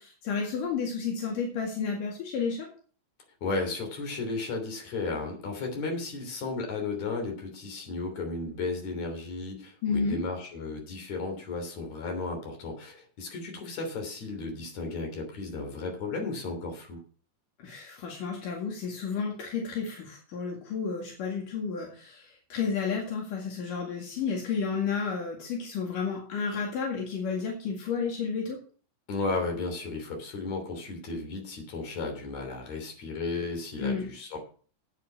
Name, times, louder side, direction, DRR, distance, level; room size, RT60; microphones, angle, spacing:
voice 1, 0.0-2.7 9.8-10.2 17.6-28.6 33.8-34.1, left 5 dB, 80° left, 0 dB, 3.6 m, -31 dB
voice 2, 3.4-17.0 29.1-34.4, left 3 dB, 60° left, 3 dB, 4.5 m, -34 dB
8.9 x 8.6 x 7.2 m, 0.42 s
omnidirectional pair, 3.7 m